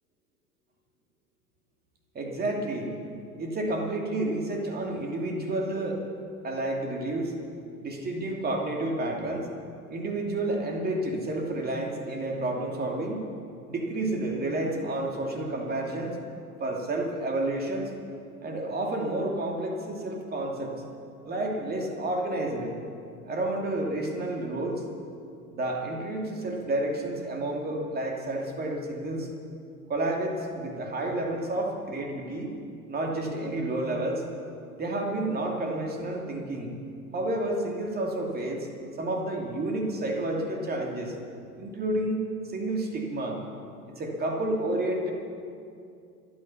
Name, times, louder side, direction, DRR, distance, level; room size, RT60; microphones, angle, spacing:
voice 1, 2.1-3.0 3.4-6.0 6.4-7.3 7.8-9.5 9.9-13.3 13.7-16.2 16.6-17.9 18.4-20.8 21.3-22.7 23.2-24.8 25.5-29.3 29.9-32.5 32.9-34.2 34.8-36.7 37.1-38.7 39.0-41.1 41.6-43.4 44.0-45.1, right 1 dB, 20° right, 1 dB, 2.6 m, -30 dB
25.5 x 9.7 x 5.8 m, 2.5 s
figure-of-eight pair, 85°, 45 cm